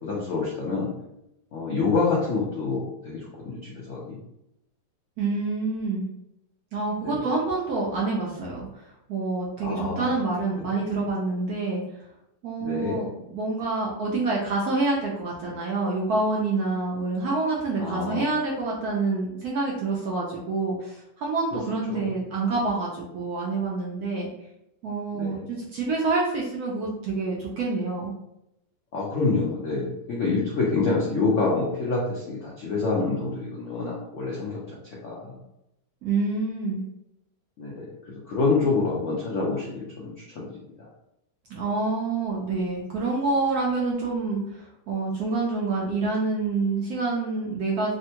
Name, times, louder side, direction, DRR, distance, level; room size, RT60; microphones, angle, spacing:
voice 1, 0.0-0.9 1.5-4.2 7.0-7.2 9.6-10.1 10.6-10.8 12.6-13.0 17.8-18.3 21.9-22.0 25.1-25.4 28.9-34.6 35.0-35.4 37.6-40.5 40.8-40.9, left 3 dB, 70° left, -5 dB, 0.7 m, -27 dB
voice 2, 5.2-6.1 6.7-11.8 12.4-13.1 13.3-24.3 24.8-28.1 36.0-36.8 41.5-47.9, right 3 dB, 70° right, -3 dB, 0.9 m, -27 dB
3.5 x 2.1 x 2.8 m, 0.84 s
omnidirectional pair, 2.1 m